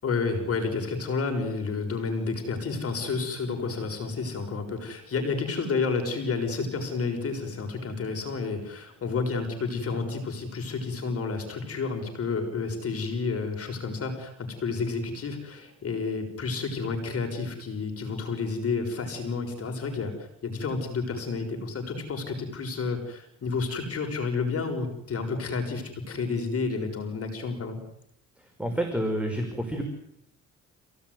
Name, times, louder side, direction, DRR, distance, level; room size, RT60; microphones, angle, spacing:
voice 1, 0.0-27.8, left 4 dB, 50° left, 4 dB, 6.1 m, -30 dB
voice 2, 28.4-29.8, right 1 dB, 5° right, 3 dB, 5.8 m, -29 dB
29.0 x 18.0 x 9.6 m, 0.77 s
cardioid pair, 90°, 30 cm